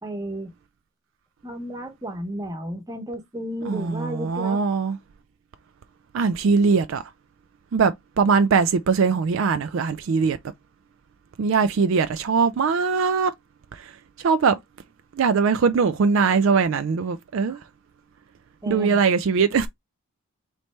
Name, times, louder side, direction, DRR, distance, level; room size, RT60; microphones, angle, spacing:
voice 1, 0.0-0.5 1.4-4.6 17.5-17.6 18.6-19.0, right 1 dB, 15° right, 0.9 m, -32 dB
voice 2, 3.7-5.0 6.1-7.0 7.7-10.4 11.4-13.3 13.7-13.8 14.2-14.6 15.2-17.6 18.7-19.7, right 5 dB, 60° right, 0.3 m, -21 dB
4.1 x 3.2 x 3.1 m
head